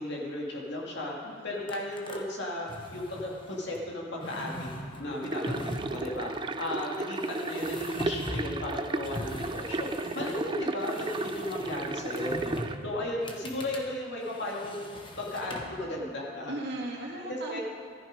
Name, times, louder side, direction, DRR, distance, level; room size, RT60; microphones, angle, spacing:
voice 1, 0.0-1.1 1.4-4.7 5.0-6.3 6.6-9.9 10.1-12.6 12.8-14.8 15.2-16.5 17.3-17.6, left 1 dB, 60° left, -3 dB, 2.6 m, -35 dB
voice 2, 1.2-1.6 5.1-5.5 16.5-17.6, right 1 dB, 55° right, -3 dB, 2.4 m, -38 dB
sound 1, 1.7-2.2 2.7-3.9 4.2-6.1 7.2-8.6 9.0-10.5 10.8-12.8 13.2-13.8 14.2-15.8, left 1 dB, 25° left, 1.2 m, -41 dB
sound 2, 5.2-12.7, right 3 dB, 25° right, 0.4 m, -34 dB
14.0 x 12.0 x 5.3 m, 2.3 s
head